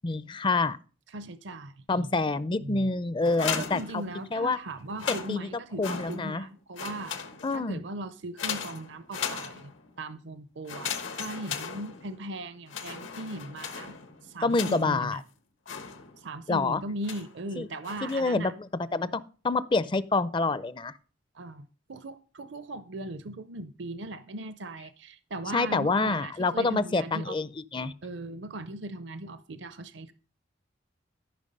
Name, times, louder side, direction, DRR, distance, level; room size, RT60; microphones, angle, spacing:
voice 1, 0.0-0.8 1.9-4.0 4.3-4.6 5.3-5.5 5.8-6.4 7.4-7.8 14.4-15.2 16.5-16.8 17.6-17.7 18.0-18.5 18.9-20.9 25.5-27.9, left 3 dB, 25° left, 0.4 m, -27 dB
voice 2, 1.1-2.1 2.6-2.9 3.6-7.2 7.5-9.7 10.0-14.0 14.2-15.2 16.2-18.5 21.3-27.4 28.0-30.1, right 2 dB, 65° right, 0.6 m, -39 dB
sound 1, 3.2-4.5 4.9-6.5 6.7-7.7 8.4-9.9 10.7-12.3 12.7-15.1 15.7-16.4 17.0-17.4 17.8-18.3, left 6 dB, 85° left, 1.3 m, -37 dB
13.5 x 5.9 x 5.3 m
head